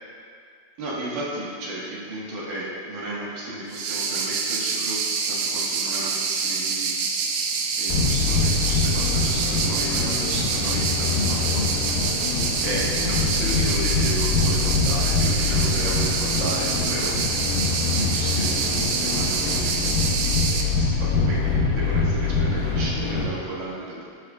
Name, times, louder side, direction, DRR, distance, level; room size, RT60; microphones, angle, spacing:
voice 1, 0.8-5.0 5.3-6.9 7.8-12.0 12.6-17.1 17.5-24.1, right 1 dB, 65° right, -6 dB, 3.0 m, -33 dB
sound 1, 3.7-20.6, right 5 dB, 90° right, 1.6 m, -26 dB
sound 2, 7.9-23.2, left 4 dB, 75° left, 3.0 m, -24 dB
11.0 x 9.9 x 2.4 m, 2.2 s
omnidirectional pair, 4.1 m